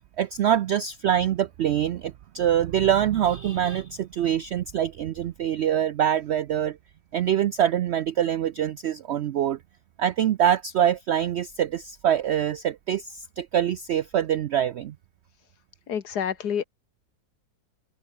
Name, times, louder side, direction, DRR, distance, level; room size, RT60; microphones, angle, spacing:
voice 1, 0.2-6.8 7.1-9.6 10.0-14.9, right 10 dB, 75° right, 0.6 m, -24 dB
voice 2, 15.9-16.6, left 8 dB, 80° left, 1.9 m, -28 dB
open air
omnidirectional pair, 1.7 m